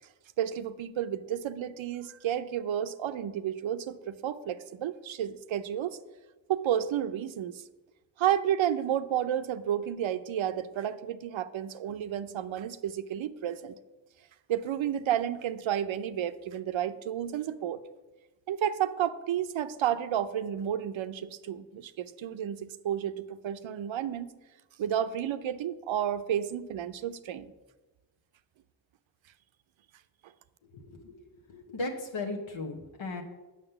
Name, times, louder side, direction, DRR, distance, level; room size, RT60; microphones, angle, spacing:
voice 1, 0.4-6.0 6.5-7.6 8.2-13.8 14.5-17.8 18.5-24.3 24.8-27.5, right 10 dB, 80° right, 12 dB, 0.6 m, -31 dB
voice 2, 30.7-31.2 31.5-33.2, left 2 dB, 80° left, 1 dB, 1.2 m, -36 dB
7.4 x 6.3 x 6.8 m, 1.1 s
cardioid pair, 60°, 46 cm